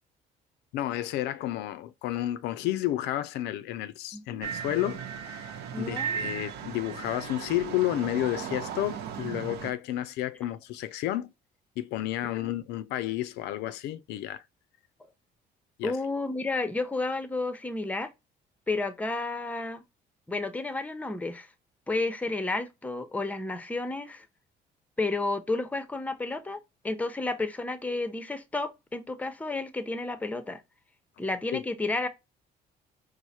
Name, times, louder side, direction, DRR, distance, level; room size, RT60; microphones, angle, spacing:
voice 1, 0.7-5.5 5.8-11.3 11.8-14.4 15.8-16.0 31.5-31.6, left 14 dB, 80° left, 0.4 m, -31 dB
voice 2, 4.1-4.4 5.7-6.1 12.4-12.5 15.0-15.1 15.8-18.1 18.7-19.8 20.3-21.5 21.9-24.3 25.0-26.6 26.8-30.6 31.2-32.1, left 3 dB, 10° left, 0.7 m, -31 dB
sound 1, 4.4-9.7, right 8 dB, 75° right, 0.7 m, -36 dB
4.7 x 2.0 x 4.2 m
cardioid pair, 110°, 17 cm